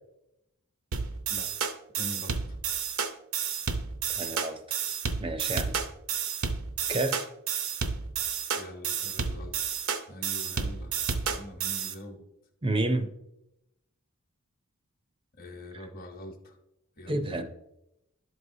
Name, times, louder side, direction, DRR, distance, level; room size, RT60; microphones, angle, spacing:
sound 1, 0.9-11.9, right 6 dB, 70° right, 0.7 m, -31 dB
voice 1, 1.9-2.6 8.5-9.7 10.1-11.0 11.3-12.2 15.3-16.6 17.0-17.3, left 1 dB, 45° left, 1 dB, 1.0 m, -43 dB
voice 2, 4.1-4.8 5.2-5.8 6.9-7.3 12.6-13.1 15.7-15.9 17.1-17.5, right 2 dB, 25° right, 7 dB, 0.5 m, -30 dB
12.0 x 4.8 x 2.7 m, 0.86 s
head